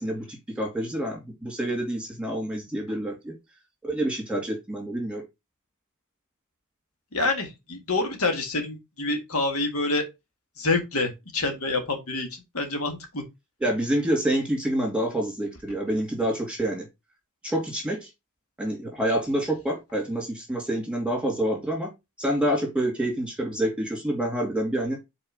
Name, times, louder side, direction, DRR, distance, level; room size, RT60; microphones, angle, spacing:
voice 1, 0.0-3.4 3.8-5.2 13.6-16.9 17.4-18.1 18.6-21.9 22.2-25.0, right 1 dB, 5° right, 2.4 m, -27 dB
voice 2, 7.1-10.0 10.6-13.2, left 2 dB, 70° left, 1.8 m, -27 dB
5.5 x 4.3 x 5.5 m
head